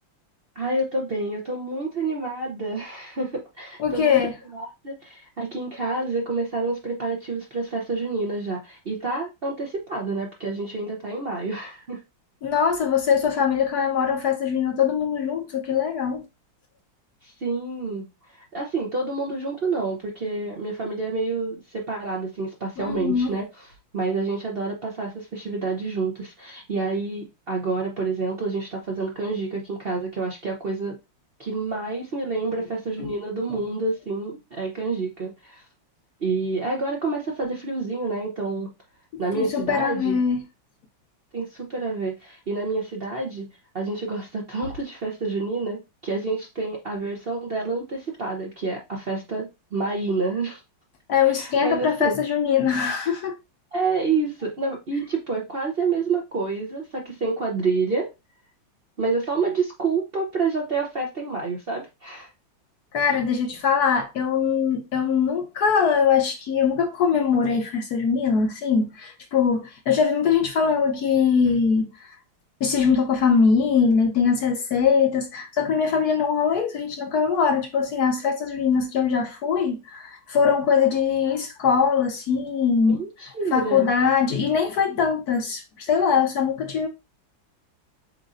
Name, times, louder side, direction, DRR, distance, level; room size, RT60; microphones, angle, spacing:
voice 1, 0.6-4.2 4.5-12.0 17.2-18.0 18.3-23.7 23.9-31.0 31.4-35.6 36.2-38.7 39.2-40.2 41.3-43.5 43.7-50.6 51.3-52.2 53.7-58.1 59.0-62.3 82.8-83.9, right 3 dB, 50° right, 0.7 m, -28 dB
voice 2, 3.8-4.3 12.4-16.2 22.8-23.3 33.0-33.1 39.4-40.4 51.1-53.4 62.9-72.2 72.6-83.0 83.2-86.9, left 6 dB, 65° left, 1.1 m, -22 dB
7.9 x 2.6 x 2.5 m
omnidirectional pair, 2.1 m